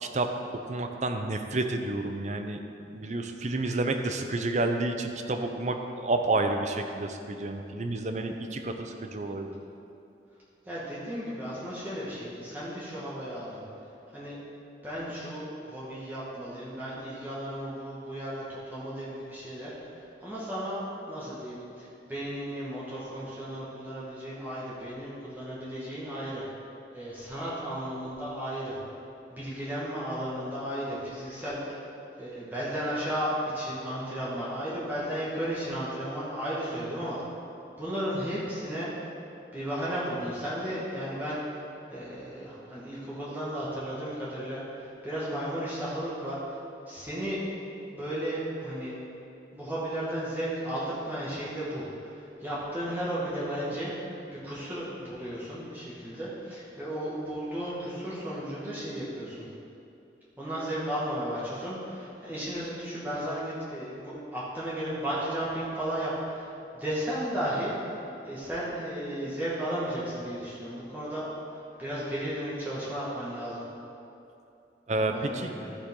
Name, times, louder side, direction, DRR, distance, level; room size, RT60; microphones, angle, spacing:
voice 1, 0.0-0.3 0.6-2.6 2.9-9.5 74.9-75.5, right 2 dB, 40° right, 5 dB, 0.6 m, -30 dB
voice 2, 10.6-13.6 14.1-14.4 14.8-19.7 20.2-20.8 21.1-26.5 26.9-28.8 29.3-31.6 32.2-37.2 37.8-38.9 39.5-41.4 41.9-46.4 46.9-47.4 47.9-49.0 49.5-53.9 54.4-59.5 60.4-67.7 68.2-71.3 71.5-73.6 74.9-75.8, equal, 10° right, -9 dB, 1.9 m, -34 dB
14.0 x 7.1 x 3.8 m, 2.7 s
head